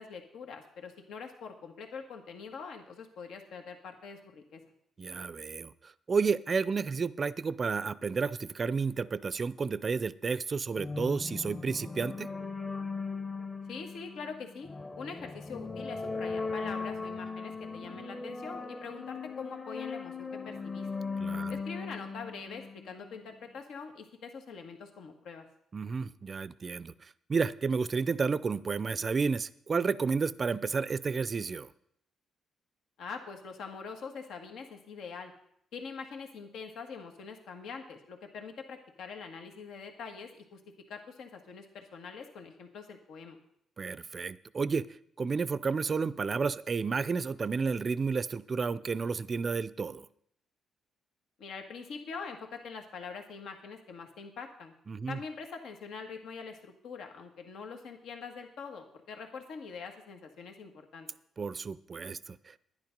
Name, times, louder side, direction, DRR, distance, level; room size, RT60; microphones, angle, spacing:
voice 1, 0.0-4.6 13.7-14.7 14.9-20.9 21.5-25.4 33.0-35.3 35.7-40.6 40.9-43.4 51.4-54.7 55.1-61.1, left 5 dB, 80° left, 4 dB, 1.5 m, -44 dB
voice 2, 5.0-12.3 21.2-21.5 25.7-31.7 43.8-44.9 45.2-50.1 54.9-55.2 61.4-62.6, right 5 dB, 35° right, 17 dB, 0.5 m, -31 dB
sound 1, 10.8-23.3, left 4 dB, 30° left, 1.2 m, -38 dB
10.5 x 10.5 x 5.2 m, 0.71 s
cardioid pair, 95°, 0 cm